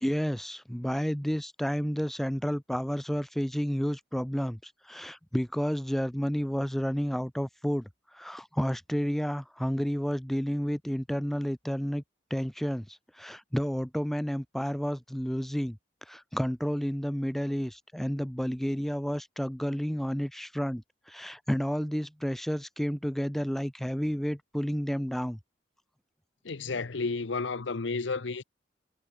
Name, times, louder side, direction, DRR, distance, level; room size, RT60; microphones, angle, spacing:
voice 1, 0.0-12.0 12.3-15.8 16.1-25.4, equal, ahead, 0.4 m, -31 dB
voice 2, 26.4-28.4, left 4 dB, 85° left, 0.8 m, -32 dB
head